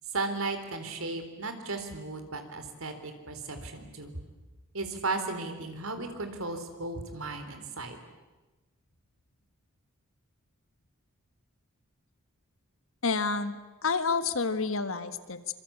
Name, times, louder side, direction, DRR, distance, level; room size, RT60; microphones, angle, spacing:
voice 1, 0.1-4.1 4.7-8.0, right 3 dB, 70° right, 7 dB, 3.8 m, -35 dB
voice 2, 13.0-15.5, left 4 dB, 65° left, 11 dB, 1.6 m, -29 dB
26.0 x 25.0 x 8.7 m, 1.1 s
head